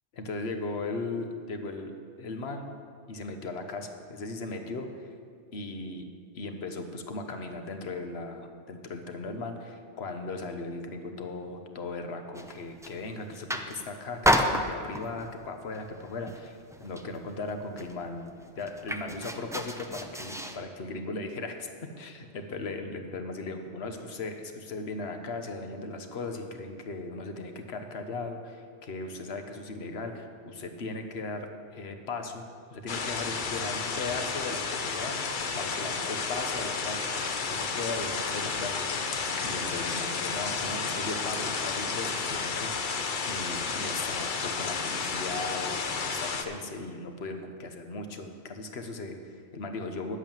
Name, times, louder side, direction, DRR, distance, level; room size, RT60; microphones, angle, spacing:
voice 1, 0.1-1.9 2.2-2.7 3.1-5.1 5.5-6.1 6.3-21.7 22.0-35.2 35.5-37.1 37.4-38.8 39.4-42.9 43.2-50.2, left 3 dB, 65° left, 6 dB, 1.2 m, -37 dB
sound 1, 12.3-13.0 13.3-13.9 14.2-15.2 15.7-16.0 16.3-17.2 17.5-17.6 17.8-20.6, equal, 5° right, 0.4 m, -30 dB
sound 2, 32.9-46.4, left 5 dB, 50° left, 0.9 m, -32 dB
10.5 x 8.1 x 7.2 m, 2.3 s
omnidirectional pair, 1.2 m